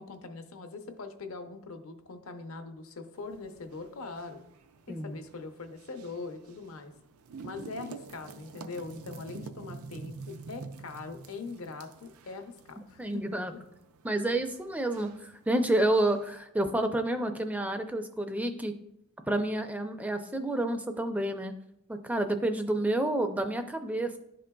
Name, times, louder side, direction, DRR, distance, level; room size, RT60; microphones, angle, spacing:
voice 1, 0.0-4.4 4.9-6.9 7.4-13.4, left 3 dB, 75° left, 7 dB, 0.6 m, -42 dB
sound 1, 3.1-16.4, right 4 dB, 85° right, 0.5 m, -49 dB
voice 2, 4.9-5.2 13.0-13.5 14.0-18.7 19.3-21.5 21.9-24.2, right 1 dB, 5° right, 7 dB, 0.4 m, -29 dB
11.5 x 3.8 x 2.2 m, 0.81 s
head